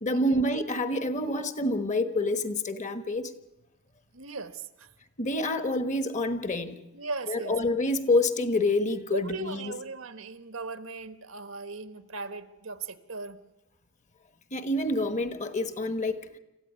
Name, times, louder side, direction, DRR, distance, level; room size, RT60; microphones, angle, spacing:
voice 1, 0.0-3.3 5.2-6.8 7.3-9.7 14.5-16.4, left 2 dB, 35° left, 10 dB, 1.4 m, -27 dB
voice 2, 4.1-4.9 6.9-7.8 9.1-13.4, right 3 dB, 85° right, 11 dB, 1.4 m, -38 dB
26.5 x 14.5 x 9.5 m, 0.97 s
head